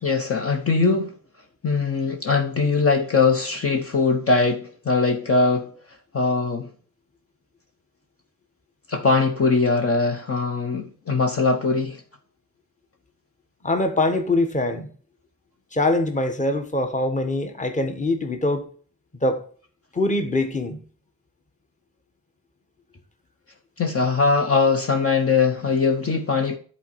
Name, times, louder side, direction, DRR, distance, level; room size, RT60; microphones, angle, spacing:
voice 1, 0.0-1.1 1.6-5.7 6.1-6.7 8.9-12.0 23.8-26.6, left 4 dB, 40° left, 1.1 m, -21 dB
voice 2, 13.6-14.9 15.7-18.6 19.2-19.4 19.9-20.8, left 2 dB, 20° left, 1.3 m, -23 dB
10.5 x 4.2 x 4.7 m
cardioid pair, 110°, 35 cm